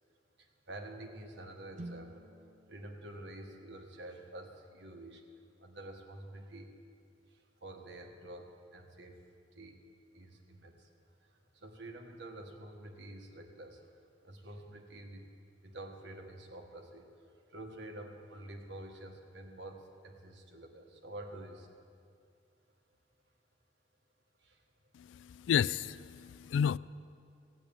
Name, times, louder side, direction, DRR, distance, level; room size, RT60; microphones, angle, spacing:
voice 1, 0.4-2.3 2.7-5.2 5.6-6.7 7.3-9.2 9.5-9.8 10.1-10.9 11.5-13.9 14.2-15.3 15.6-21.8 24.4-24.6, right 1 dB, 70° right, 3 dB, 1.5 m, -48 dB
sound 1, 1.7-5.8, right 1 dB, 40° right, 0.6 m, -53 dB
voice 2, 24.9-26.8, left 8 dB, 85° left, 20 dB, 0.3 m, -31 dB
15.5 x 8.3 x 8.8 m, 2.4 s
head